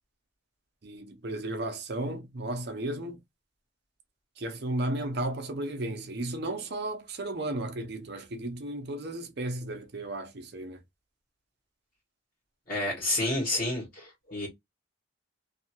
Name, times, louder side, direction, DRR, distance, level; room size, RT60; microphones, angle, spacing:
voice 1, 0.8-3.2 4.4-10.8, right 1 dB, 55° right, 0.6 m, -34 dB
voice 2, 12.7-14.5, left 2 dB, 45° left, 1.4 m, -30 dB
2.6 x 2.4 x 2.9 m
head